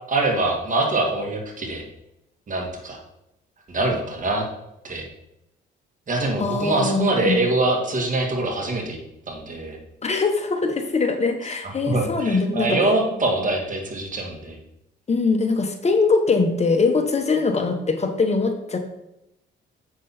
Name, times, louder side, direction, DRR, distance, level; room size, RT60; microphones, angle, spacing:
voice 1, 0.1-1.8 2.5-3.0 3.7-4.5 4.8-5.0 6.1-9.0 9.3-9.8 11.9-14.6, right 2 dB, 40° right, 1 dB, 2.0 m, -24 dB
voice 2, 6.4-7.4 10.0-12.8 15.1-18.8, left 4 dB, 35° left, 6 dB, 1.0 m, -22 dB
7.6 x 6.2 x 4.3 m, 0.86 s
cardioid pair, 90°, 20 cm